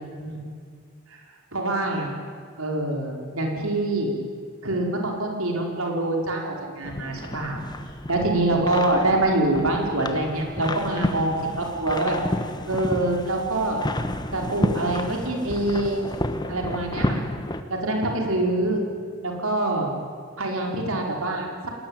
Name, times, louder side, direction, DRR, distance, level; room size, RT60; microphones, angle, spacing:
voice 1, 1.5-2.1 2.6-4.1 4.6-7.6 8.1-12.2 12.7-13.8 14.3-16.1 16.5-17.3 17.7-18.8 19.2-19.9 20.4-21.7, right 2 dB, 80° right, 1 dB, 4.9 m, -25 dB
sound 1, 6.8-17.6, left 1 dB, 20° left, 1.4 m, -31 dB
29.0 x 19.5 x 9.1 m, 2.1 s
head